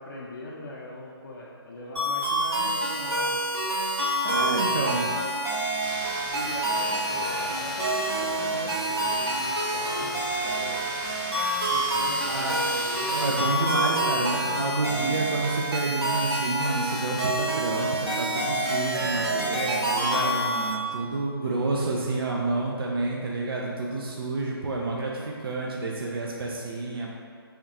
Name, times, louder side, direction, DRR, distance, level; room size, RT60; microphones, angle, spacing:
voice 1, 0.0-3.4 4.3-4.9 6.3-10.8 11.7-13.2 13.8-14.7 21.4-21.6, left 2 dB, 55° left, -6 dB, 0.6 m, -40 dB
sound 1, 2.0-20.7, right 1 dB, 80° right, 1.3 m, -27 dB
voice 2, 4.2-5.1 12.3-12.6 13.1-27.1, right 2 dB, 65° right, -2 dB, 0.5 m, -29 dB
sound 2, 5.8-13.3, right 1 dB, 40° right, 0.9 m, -38 dB
3.5 x 2.3 x 4.1 m, 2.3 s
figure-of-eight pair, 155°, 13 cm